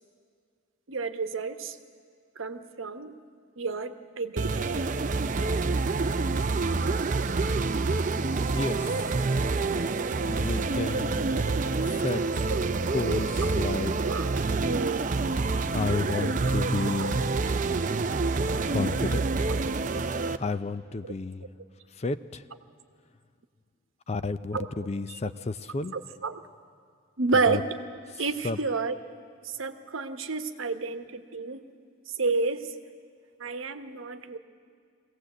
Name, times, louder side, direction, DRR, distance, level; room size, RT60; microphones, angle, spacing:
voice 1, 0.9-1.8 2.4-3.1 3.6-4.9 12.5-12.6 13.4-13.5 14.0-15.0 16.2-16.5 17.0-17.4 21.0-21.1 24.5-25.2 25.9-26.4 27.2-27.6 28.2-29.0 29.4-31.7 32.2-32.7 33.4-34.4, right 4 dB, 80° right, 9 dB, 1.0 m, -30 dB
sound 1, 4.4-20.4, right 3 dB, 40° right, 0.5 m, -27 dB
voice 2, 8.5-8.9 10.3-11.3 12.0-12.2 12.9-13.9 15.7-17.3 18.7-19.2 20.4-21.4 22.0-22.4 24.1-25.9 27.5-27.6 28.4-28.6, left 3 dB, 30° left, 13 dB, 0.4 m, -31 dB
22.5 x 17.0 x 8.0 m, 2.3 s
head